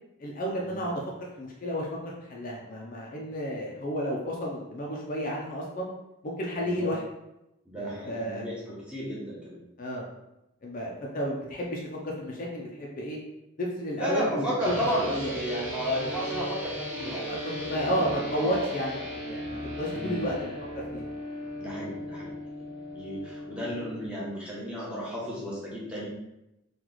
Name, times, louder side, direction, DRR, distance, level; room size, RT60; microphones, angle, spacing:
voice 1, 0.2-1.0 1.4-5.9 6.4-7.0 7.7-8.4 9.8-10.0 10.6-11.8 12.2-13.2 13.6-14.8 15.1-15.3 17.0-21.0, equal, 40° left, -2 dB, 0.5 m, -32 dB
voice 2, 7.7-9.6 14.0-17.3 17.6-18.7 19.9-20.3 21.6-22.3 22.6-26.1, equal, 5° right, -7 dB, 0.9 m, -33 dB
sound 1, 14.6-24.1, equal, 65° right, 1.2 m, -37 dB
3.0 x 2.3 x 3.8 m, 0.90 s
head